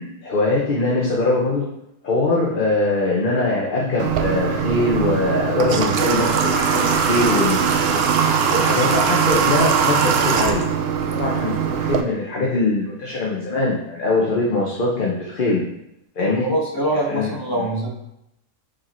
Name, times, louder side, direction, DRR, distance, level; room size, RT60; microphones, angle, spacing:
voice 1, 0.0-1.7 2.0-7.6 7.9-10.6 11.1-15.6 16.2-16.5 17.1-17.7, left 2 dB, 45° left, -3 dB, 1.0 m, -22 dB
Water / Water tap faucet, 4.0-12.0, right 7 dB, 60° right, 0.7 m, -20 dB
voice 2, 16.2-17.9, right 1 dB, 15° left, -3 dB, 1.3 m, -24 dB
5.0 x 4.6 x 4.3 m, 0.83 s
omnidirectional pair, 1.4 m